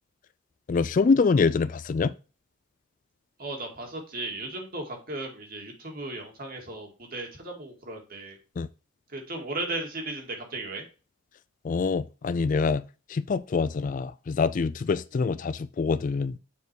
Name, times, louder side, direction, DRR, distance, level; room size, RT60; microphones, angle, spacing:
voice 1, 0.7-2.1 8.6-8.7 11.6-12.8 13.1-16.4, left 4 dB, 40° left, 0.3 m, -25 dB
voice 2, 3.4-8.4 9.1-10.8, right 2 dB, 45° right, 2.2 m, -36 dB
7.2 x 4.5 x 4.7 m
head